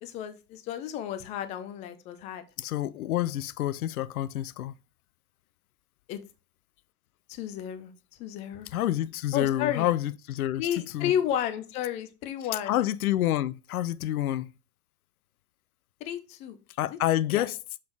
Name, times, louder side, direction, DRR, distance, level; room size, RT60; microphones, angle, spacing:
voice 1, 0.0-2.4 6.1-6.2 7.3-7.9 8.2-8.7 9.3-9.9 10.6-12.8 16.0-16.6 16.9-17.0 17.3-17.5, left 10 dB, 15° left, 0.4 m, -32 dB
voice 2, 2.6-4.7 8.7-10.6 10.9-11.1 12.7-14.5 16.8-17.6, left 13 dB, 60° left, 0.6 m, -28 dB
6.8 x 5.6 x 3.1 m
figure-of-eight pair, 95°, 49 cm